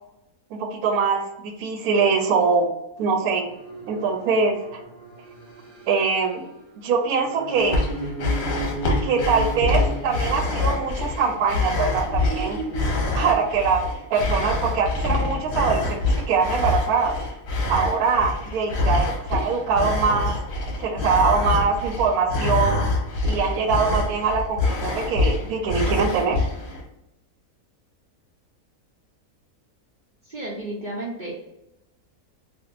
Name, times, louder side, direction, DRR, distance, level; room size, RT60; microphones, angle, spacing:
voice 1, 0.5-2.7 3.0-3.4 3.9-4.8 5.9-6.4 6.8-7.8 9.0-12.6 13.1-13.8 14.1-16.0 16.3-17.1 17.7-20.4 20.8-22.8 23.3-26.5, right 5 dB, 80° right, 6 dB, 1.1 m, -23 dB
sound 1, 3.3-11.2 11.8-12.8, right 3 dB, 35° right, 1.6 m, -36 dB
sound 2, 7.6-26.8, left 2 dB, 55° left, 0.9 m, -26 dB
voice 2, 30.3-31.4, right 1 dB, 55° right, -4 dB, 0.5 m, -32 dB
3.5 x 2.5 x 2.4 m, 0.89 s
omnidirectional pair, 1.6 m